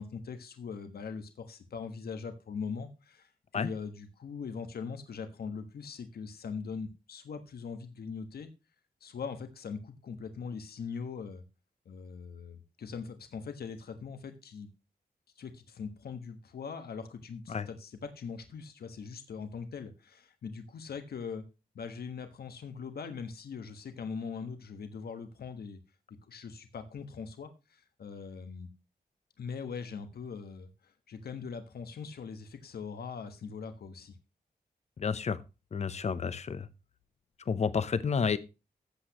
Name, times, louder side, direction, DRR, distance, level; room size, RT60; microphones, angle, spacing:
voice 1, 0.0-8.5 9.0-11.4 11.8-14.7 15.3-21.4 21.7-25.8 26.2-28.7 29.4-34.2, left 5 dB, 85° left, 8 dB, 1.4 m, -41 dB
voice 2, 35.0-35.4 35.7-36.7 37.5-38.4, left 6 dB, 45° left, 15 dB, 0.8 m, -30 dB
14.0 x 8.4 x 3.0 m, 0.28 s
wide cardioid pair, 160°, 16 cm